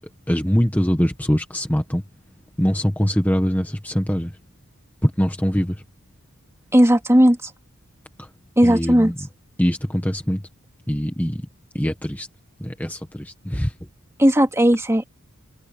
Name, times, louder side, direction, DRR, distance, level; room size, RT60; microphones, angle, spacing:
voice 1, 0.3-2.0 2.6-4.4 5.0-5.8 8.2-8.3 8.6-9.2 9.6-10.4 10.9-11.5 11.7-12.3 12.6-13.7, equal, 5° left, 1.5 m, -22 dB
voice 2, 6.7-7.5 8.6-9.1 14.2-15.1, equal, 10° right, 2.4 m, -16 dB
open air
head